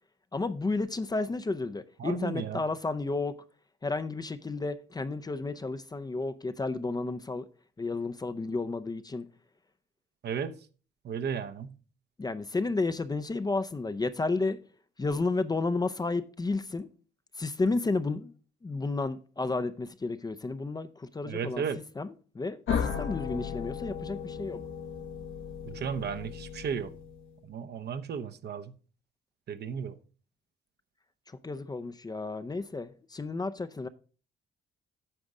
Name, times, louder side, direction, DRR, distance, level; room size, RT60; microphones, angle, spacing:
voice 1, 0.3-3.4 3.8-7.4 7.8-9.3 12.2-14.6 15.0-16.9 17.4-18.3 18.6-21.6 22.0-24.6 31.4-33.9, left 3 dB, 20° left, 0.5 m, -32 dB
voice 2, 2.0-2.6 10.2-10.6 11.0-11.8 21.3-21.8 25.6-26.9 27.5-28.7 29.5-30.0, right 7 dB, 55° right, 0.8 m, -34 dB
sound 1, 22.7-27.4, left 7 dB, 80° left, 1.5 m, -35 dB
8.9 x 5.3 x 4.8 m
cardioid pair, 90°, 20 cm